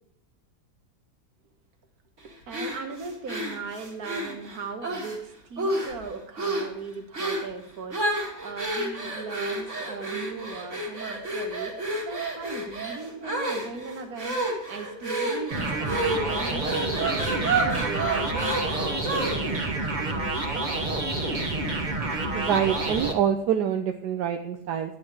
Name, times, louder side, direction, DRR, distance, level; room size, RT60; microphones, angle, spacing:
voice 1, 2.2-20.3, right 4 dB, 65° right, 6 dB, 1.8 m, -38 dB
Content warning, 2.5-5.2 5.6-6.0 6.4-6.7 7.1-7.5 7.9-19.6, right 2 dB, 45° right, 2.4 m, -30 dB
sound 1, 15.5-23.1, right 2 dB, 30° right, 1.2 m, -28 dB
voice 2, 22.3-25.0, right 9 dB, 80° right, 6 dB, 1.3 m, -26 dB
10.5 x 7.6 x 4.7 m, 0.78 s
omnidirectional pair, 1.8 m